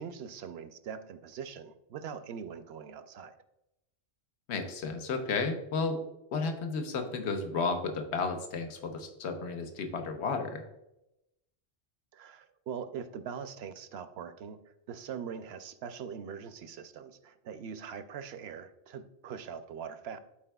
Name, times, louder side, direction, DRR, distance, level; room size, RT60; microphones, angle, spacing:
voice 1, 0.0-3.3 12.1-20.2, right 7 dB, 70° right, 11 dB, 0.8 m, -42 dB
voice 2, 4.5-6.0 6.3-10.6, left 4 dB, 80° left, 5 dB, 1.1 m, -33 dB
12.0 x 4.3 x 2.3 m, 0.88 s
omnidirectional pair, 1.1 m